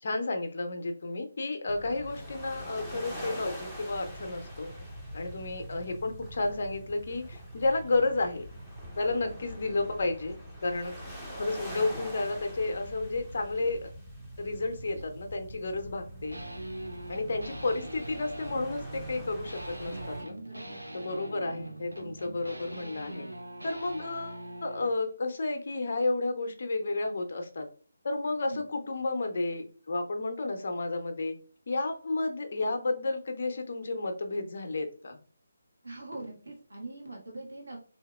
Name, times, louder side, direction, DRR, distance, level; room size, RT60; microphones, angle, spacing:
voice 1, 0.0-4.8 5.1-8.4 9.0-10.3 10.6-10.9 11.4-13.9 14.4-16.4 17.1-20.4 20.9-23.3 23.6-27.7 28.0-31.3 31.7-35.2, left 2 dB, 50° left, 6 dB, 0.6 m, -32 dB
sound 1, 1.7-20.2, equal, ahead, 0.6 m, -43 dB
sound 2, 16.3-25.0, right 1 dB, 85° right, 0.7 m, -42 dB
voice 2, 19.9-20.8 28.4-28.6 35.8-38.0, right 2 dB, 70° right, -1 dB, 1.3 m, -43 dB
3.3 x 2.8 x 2.2 m, 0.42 s
figure-of-eight pair, 150°, 0 cm